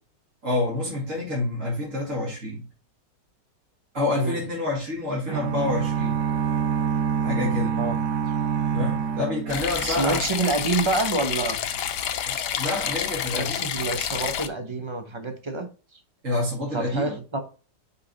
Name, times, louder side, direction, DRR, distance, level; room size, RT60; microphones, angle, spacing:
voice 1, 0.4-2.6 3.9-6.2 7.2-7.8 8.7-10.2 12.3-13.7 16.2-17.1, left 2 dB, 45° right, 2.3 m, -28 dB
sound 1, 5.3-10.2, right 7 dB, 85° right, 1.6 m, -26 dB
sound 2, 9.5-14.5, left 9 dB, 75° left, 1.3 m, -29 dB
voice 2, 9.8-11.6 13.3-15.7 16.7-17.4, right 3 dB, 25° right, 0.6 m, -27 dB
5.6 x 5.0 x 4.0 m
omnidirectional pair, 1.9 m